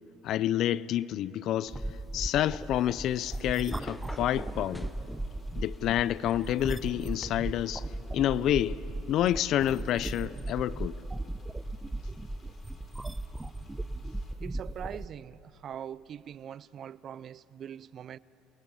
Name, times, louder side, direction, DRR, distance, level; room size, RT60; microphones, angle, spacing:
voice 1, 0.2-1.8 2.1-4.9 5.6-7.8 8.1-8.8 9.1-11.0, left 12 dB, 60° left, 0.4 m, -28 dB
sound 1, 1.7-7.3, equal, 5° left, 1.0 m, -49 dB
sound 2, 1.7-15.1, right 2 dB, 10° right, 0.7 m, -37 dB
sound 3, 3.7-14.3, left 2 dB, 35° left, 3.8 m, -61 dB
voice 2, 14.4-18.2, right 9 dB, 50° right, 0.4 m, -42 dB
29.0 x 21.0 x 5.5 m
supercardioid pair, 90°, 0 cm